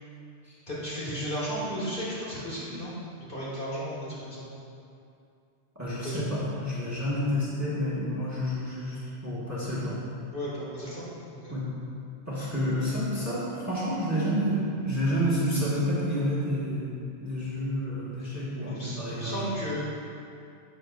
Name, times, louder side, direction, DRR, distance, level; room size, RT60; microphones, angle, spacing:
voice 1, 0.7-4.5 6.0-6.4 10.3-11.1 11.4-11.5 18.6-19.8, equal, 50° left, -8 dB, 2.3 m, -34 dB
voice 2, 5.7-10.0 11.5-11.7 12.3-19.5, equal, 15° right, -9 dB, 1.7 m, -29 dB
11.0 x 7.5 x 2.5 m, 2.5 s
omnidirectional pair, 1.1 m